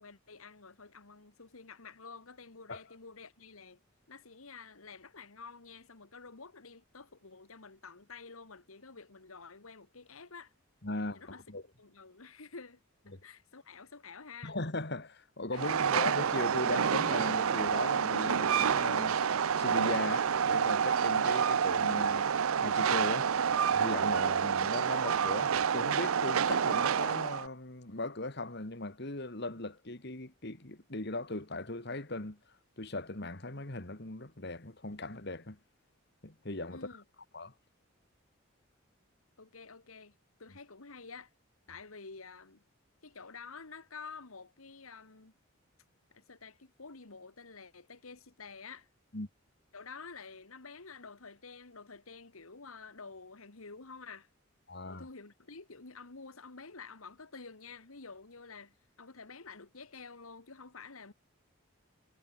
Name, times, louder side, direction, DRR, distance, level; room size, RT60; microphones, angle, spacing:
voice 1, 0.0-3.8 4.1-10.5 11.1-11.4 11.8-12.8 13.1-14.6 15.5-16.0 36.7-37.0 39.4-41.3 41.7-42.6 43.0-45.3 46.1-48.9 49.7-54.3 54.9-61.1, left 4 dB, 80° left, 1.8 m, -50 dB
voice 2, 10.8-11.6 13.1-13.2 14.4-19.3 19.6-22.3 22.6-23.3 23.7-32.4 32.8-35.6 36.2-36.9 37.3-37.5 49.1-49.3 54.7-55.1, left 2 dB, 50° left, 2.1 m, -38 dB
Train, 15.5-27.5, right 7 dB, 80° right, 0.6 m, -28 dB
head